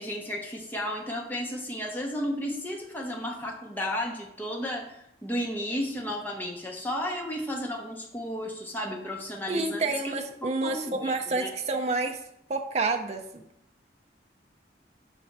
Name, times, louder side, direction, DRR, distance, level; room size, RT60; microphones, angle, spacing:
voice 1, 0.0-10.1 10.4-11.5, equal, 10° left, 0 dB, 0.8 m, -33 dB
voice 2, 9.5-12.2 12.5-13.4, right 3 dB, 35° right, 5 dB, 0.4 m, -29 dB
6.0 x 3.3 x 5.3 m, 0.80 s
head